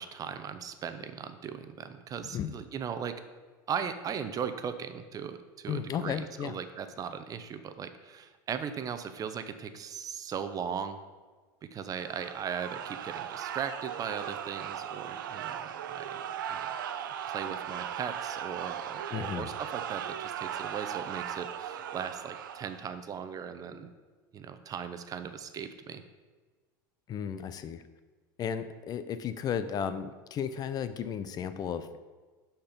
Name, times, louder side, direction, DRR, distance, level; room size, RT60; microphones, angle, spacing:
voice 1, 0.0-3.1 3.7-11.0 11.7-15.6 15.9-16.2 16.5-16.7 17.3-23.9 24.3-26.0, right 7 dB, 35° right, 9 dB, 0.8 m, -38 dB
voice 2, 5.7-6.6 19.1-19.5 27.1-27.8 28.4-31.9, left 8 dB, 40° left, 12 dB, 0.5 m, -34 dB
sound 1, 12.0-22.9, right 9 dB, 90° right, 0.5 m, -38 dB
11.5 x 4.5 x 5.1 m, 1.4 s
supercardioid pair, 100°, 11 cm